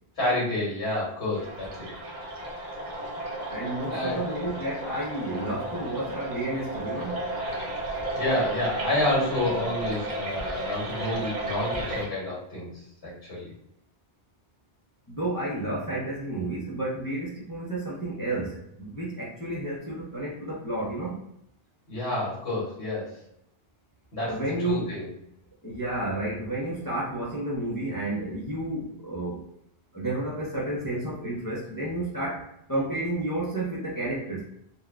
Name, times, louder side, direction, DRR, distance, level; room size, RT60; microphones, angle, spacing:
voice 1, 0.2-1.9 3.9-4.2 8.1-12.7 13.0-13.5 21.9-23.1 24.1-25.1, left 1 dB, 75° left, -6 dB, 1.6 m, -29 dB
sound 1, 1.3-12.1, right 1 dB, 50° right, 0.7 m, -33 dB
voice 2, 3.5-7.2 15.1-21.2 24.2-25.0 25.6-29.4 29.9-34.4, right 2 dB, 25° left, -6 dB, 0.6 m, -31 dB
3.8 x 2.2 x 2.3 m, 0.78 s
omnidirectional pair, 1.1 m